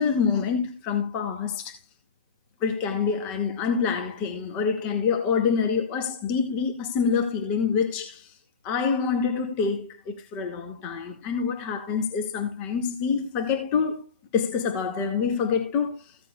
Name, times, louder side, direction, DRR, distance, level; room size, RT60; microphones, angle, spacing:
voice 1, 0.0-1.8 2.6-8.3 8.6-14.1 14.3-16.0, left 6 dB, 20° left, 2.2 m, -26 dB
16.0 x 8.1 x 2.4 m
hypercardioid pair, 150°, 6 cm